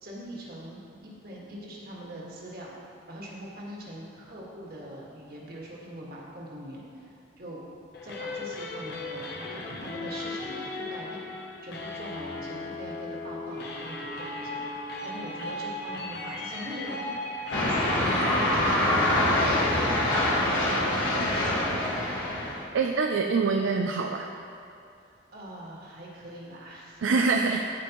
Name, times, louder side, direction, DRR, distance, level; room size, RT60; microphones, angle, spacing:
voice 1, 0.0-2.7 3.1-7.6 8.0-11.3 11.6-14.7 15.0-17.1 17.5-18.9 25.3-27.6, equal, 50° right, -4 dB, 1.7 m, -42 dB
sound 1, 7.9-19.1, left 2 dB, 55° left, 0.8 m, -37 dB
sound 2, 17.5-22.6, left 1 dB, 85° left, 1.6 m, -25 dB
voice 2, 22.7-24.3 27.0-27.6, right 4 dB, 85° right, 3 dB, 0.4 m, -25 dB
15.0 x 5.1 x 3.0 m, 2.7 s
head